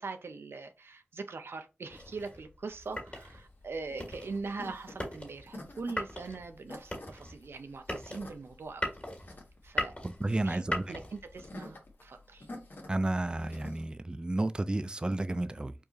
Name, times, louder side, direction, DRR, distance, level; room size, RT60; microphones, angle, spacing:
voice 1, 0.0-8.9 9.6-9.9 10.4-12.5, right 4 dB, 85° right, 0.5 m, -42 dB
sound 1, 1.9-11.5, left 1 dB, 30° left, 1.9 m, -40 dB
sound 2, 3.2-13.8, left 1 dB, 60° left, 1.2 m, -48 dB
voice 2, 10.2-10.8 12.9-15.7, right 2 dB, 25° right, 0.3 m, -31 dB
4.6 x 2.5 x 2.9 m
wide cardioid pair, 50°, 4 cm